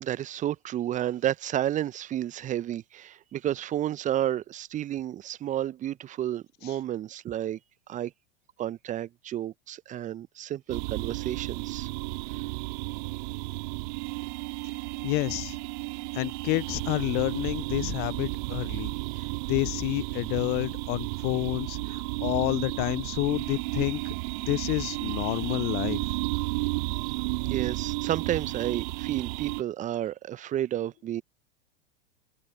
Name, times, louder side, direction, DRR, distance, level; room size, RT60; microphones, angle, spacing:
voice 1, 0.0-7.6 7.9-8.1 8.6-11.9 12.3-12.4 27.4-31.2, right 12 dB, 25° right, 0.9 m, -31 dB
sound 1, 10.7-29.6, right 28 dB, 50° right, 3.3 m, -33 dB
voice 2, 15.0-15.6 16.1-18.9 19.5-24.1 24.5-26.0, left 26 dB, 35° left, 0.5 m, -29 dB
figure-of-eight pair, 90°, 29 cm